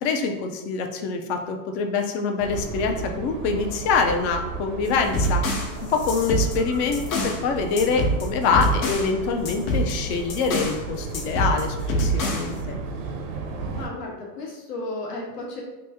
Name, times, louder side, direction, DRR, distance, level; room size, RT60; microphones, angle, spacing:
voice 1, 0.0-5.4 5.8-12.8, left 4 dB, 45° left, 4 dB, 0.5 m, -25 dB
sound 1, 2.4-13.9, right 4 dB, 60° right, 0.7 m, -34 dB
sound 2, 4.9-7.4 7.8-9.1 9.5-10.8 11.1-12.6, equal, 60° left, 0.9 m, -26 dB
voice 2, 13.7-15.6, left 2 dB, 85° left, -2 dB, 1.2 m, -34 dB
3.1 x 2.6 x 3.4 m, 1.1 s
supercardioid pair, 135°, 46 cm